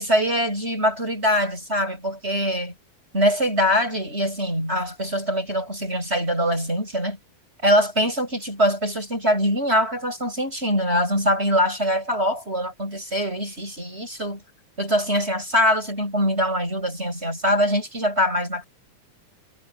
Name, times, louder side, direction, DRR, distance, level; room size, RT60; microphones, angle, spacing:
voice 1, 0.0-2.7 3.1-7.2 7.6-14.4 14.8-18.6, equal, 15° right, 8.2 m, -23 dB
omnidirectional pair, 3.8 m